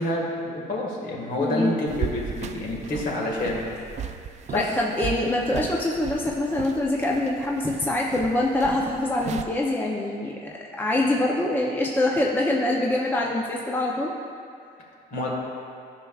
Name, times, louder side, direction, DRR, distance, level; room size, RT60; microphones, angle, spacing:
voice 1, 0.0-3.6 4.5-4.6 14.8-15.3, left 1 dB, 55° left, -2 dB, 1.8 m, -28 dB
voice 2, 1.4-1.7 4.5-14.1, left 1 dB, 10° left, -2 dB, 0.6 m, -24 dB
sound 1, 1.9-9.4, right 7 dB, 45° right, 0.4 m, -36 dB
13.0 x 5.7 x 2.4 m, 2.4 s
cardioid pair, 110°, 17 cm